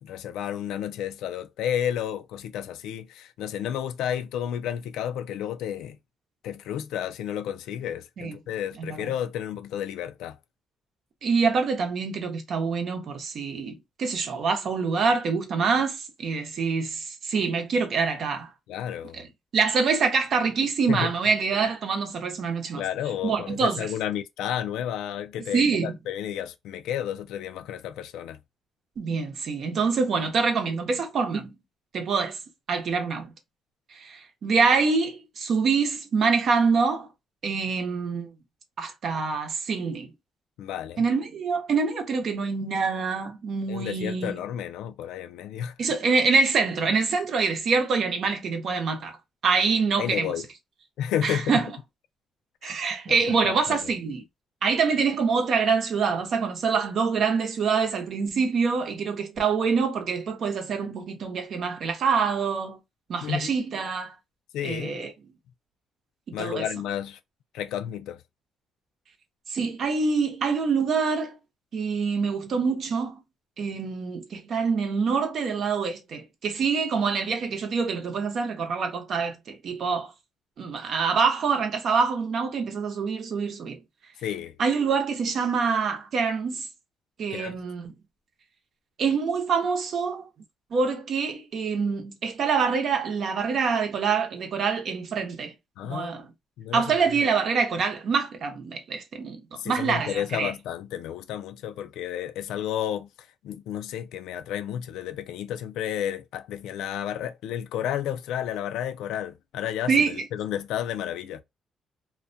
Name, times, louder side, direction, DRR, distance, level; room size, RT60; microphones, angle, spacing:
voice 1, 0.0-6.0 6.4-10.4 18.7-19.2 20.9-21.1 22.8-28.4 40.6-41.0 43.7-45.7 50.0-50.4 51.0-51.6 52.6-52.8 53.1-53.8 63.2-63.5 64.5-65.0 66.3-67.2 67.5-68.2 84.2-84.6 87.3-87.6 95.8-96.3 96.6-96.8 99.5-103.1 103.4-111.4, left 10 dB, 90° left, 0.3 m, -31 dB
voice 2, 8.8-9.1 11.2-18.5 19.1-22.8 23.2-23.8 25.5-25.9 29.0-31.5 31.9-32.4 32.7-33.3 33.9-37.1 37.4-38.3 38.8-40.1 41.0-44.4 45.8-49.2 49.4-50.3 51.2-51.7 52.6-54.2 54.6-62.8 63.1-64.2 64.6-65.1 66.3-66.6 69.5-71.4 71.7-73.2 73.6-80.1 80.6-83.8 84.6-86.7 87.2-87.9 89.0-90.2 90.7-95.5 95.8-96.3 96.7-100.5 109.9-110.2, right 5 dB, 60° right, 0.7 m, -25 dB
2.3 x 2.2 x 2.5 m
cardioid pair, 90°, 0 cm